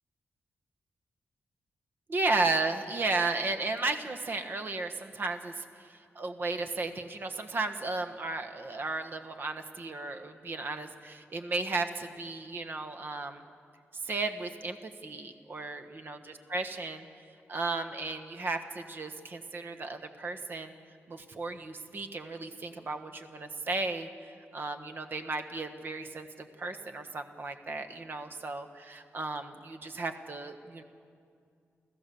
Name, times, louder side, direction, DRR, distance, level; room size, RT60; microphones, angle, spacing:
voice 1, 2.1-13.4 14.0-14.8 15.0-17.1 17.5-20.7 21.1-24.1 24.5-30.8, right 3 dB, 50° right, 7 dB, 1.3 m, -34 dB
29.5 x 14.5 x 7.0 m, 2.4 s
wide cardioid pair, 125°, 5 cm